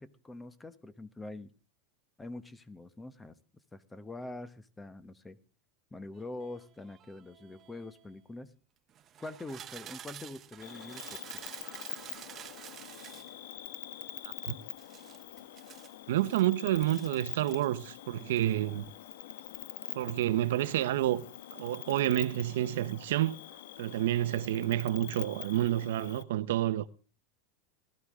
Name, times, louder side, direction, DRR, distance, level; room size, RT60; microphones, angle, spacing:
voice 1, 0.0-1.5 2.2-3.3 3.7-5.4 5.9-8.5 9.2-11.2, left 2 dB, 10° left, 1.0 m, -44 dB
sound 1, 6.1-8.1 8.9-13.3 14.8-16.4 16.8-17.9 18.2-18.5, right 10 dB, 30° right, 1.0 m, -50 dB
Cricket, 10.6-26.2, left 12 dB, 80° left, 1.0 m, -45 dB
voice 2, 14.2-14.5 16.1-18.8 19.9-21.3 21.5-23.4 23.8-26.9, right 13 dB, 80° right, 0.8 m, -29 dB
19.5 x 13.0 x 3.6 m
supercardioid pair, 145°, 0 cm